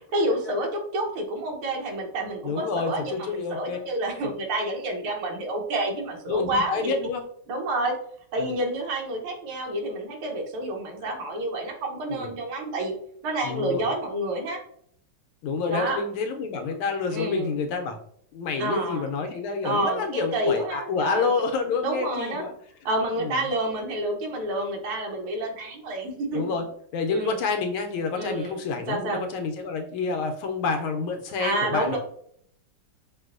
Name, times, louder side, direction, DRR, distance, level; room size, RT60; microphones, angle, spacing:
voice 1, 0.1-6.9 7.5-7.9 8.3-12.9 13.2-14.6 15.7-16.0 17.1-17.5 18.6-19.1 19.6-21.3 21.8-22.5 22.9-26.7 27.1-27.4 28.1-29.3 31.4-32.0, right 1 dB, 80° right, 1 dB, 1.8 m, -29 dB
voice 2, 2.4-3.9 6.3-7.2 8.4-8.5 11.0-11.1 12.1-12.3 13.4-13.8 15.4-18.0 18.3-22.5 23.2-23.3 26.3-26.6 26.9-32.0, left 4 dB, 75° left, 5 dB, 1.3 m, -28 dB
6.1 x 2.6 x 2.5 m, 0.65 s
omnidirectional pair, 2.4 m